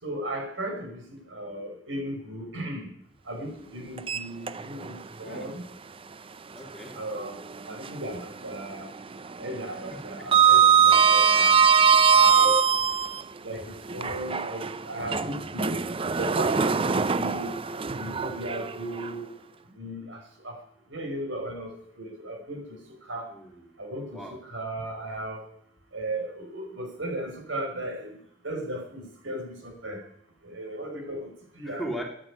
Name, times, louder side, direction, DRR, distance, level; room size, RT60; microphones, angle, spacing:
voice 1, 0.0-2.9 3.2-5.6 7.0-7.3 7.7-8.9 9.4-11.6 12.1-12.6 13.4-17.6 17.9-19.3 19.7-20.6 20.9-23.3 23.8-25.4 25.9-28.1 28.4-30.0 30.4-31.8, right 1 dB, 85° right, 3 dB, 5.1 m, -36 dB
Sliding door, 4.0-5.0 5.3-5.5 7.2-8.2 8.5-8.9 9.1-13.2 13.9-19.1, right 6 dB, 30° right, 0.5 m, -22 dB
voice 2, 5.2-5.5 6.5-7.0 9.9-10.0 23.3-23.8 24.1-24.4 31.6-32.0, right 1 dB, ahead, 0 dB, 2.6 m, -38 dB
13.5 x 9.9 x 9.7 m, 0.68 s
head